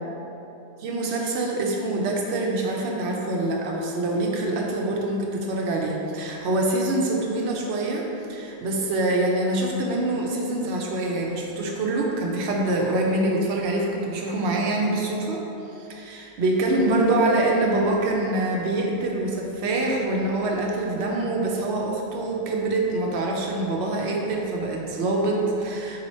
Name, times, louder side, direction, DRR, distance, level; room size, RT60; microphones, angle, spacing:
voice 1, 0.8-15.4 15.8-26.1, right 2 dB, 90° right, -1 dB, 0.9 m, -25 dB
4.0 x 2.8 x 4.1 m, 2.9 s
omnidirectional pair, 1.1 m